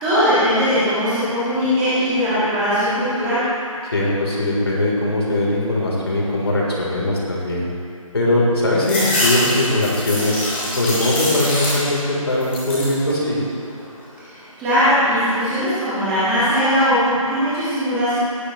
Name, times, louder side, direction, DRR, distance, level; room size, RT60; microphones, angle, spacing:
voice 1, 0.0-3.4 14.2-18.1, equal, 5° right, -14 dB, 1.9 m, -19 dB
voice 2, 3.9-7.6 8.1-10.4 10.7-13.4, left 1 dB, 45° left, -5 dB, 3.8 m, -20 dB
sound 1, 8.8-12.1 12.4-13.0 13.5-14.2, left 1 dB, 20° left, 3.2 m, -24 dB
18.5 x 11.5 x 3.2 m, 2.4 s
figure-of-eight pair, 175°, 18 cm